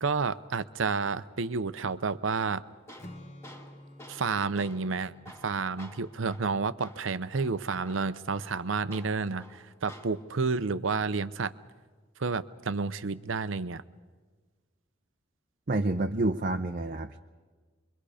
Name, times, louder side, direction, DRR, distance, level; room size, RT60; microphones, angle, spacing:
voice 1, 0.0-2.6 4.1-5.1 5.4-11.5 12.2-13.8, right 4 dB, 80° right, 14 dB, 0.7 m, -30 dB
Tools, 2.4-10.4, left 1 dB, 15° left, 1.9 m, -52 dB
Strum, 3.0-7.1, left 1 dB, 35° left, 1.2 m, -51 dB
voice 2, 15.7-17.2, right 2 dB, 45° right, 5 dB, 0.6 m, -28 dB
28.0 x 23.0 x 5.0 m, 1.4 s
head